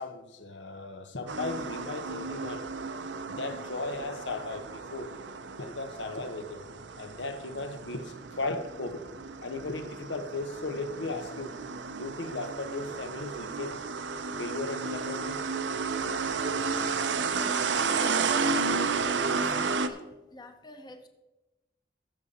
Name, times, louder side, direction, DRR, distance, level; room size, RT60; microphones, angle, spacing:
voice 1, 0.0-2.7 3.3-5.2 5.6-6.6 7.0-9.1 9.4-11.6 12.0-13.8 14.4-15.5, left 2 dB, 90° left, 1.0 m, -36 dB
sound 1, 1.3-19.9, right 4 dB, 85° right, 0.7 m, -32 dB
voice 2, 18.3-18.6 19.2-20.0 20.3-21.1, left 1 dB, 25° left, 0.8 m, -50 dB
15.0 x 6.9 x 4.2 m
head